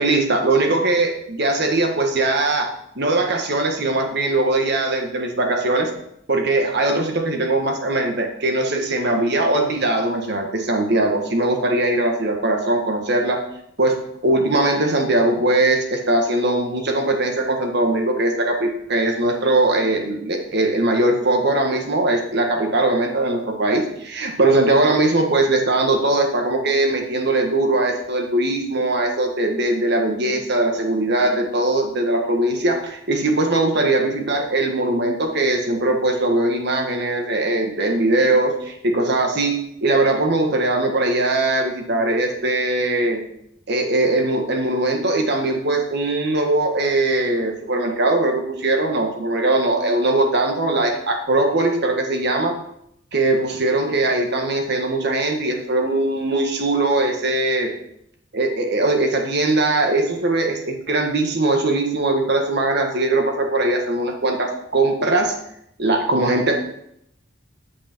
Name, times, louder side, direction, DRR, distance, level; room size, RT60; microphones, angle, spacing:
voice 1, 0.0-2.7 2.9-5.9 6.3-13.4 13.8-14.0 14.2-43.2 43.7-52.6 53.1-57.7 58.3-65.3 65.8-66.5, right 2 dB, 60° right, 3 dB, 1.6 m, -20 dB
8.3 x 8.2 x 4.5 m, 0.75 s
head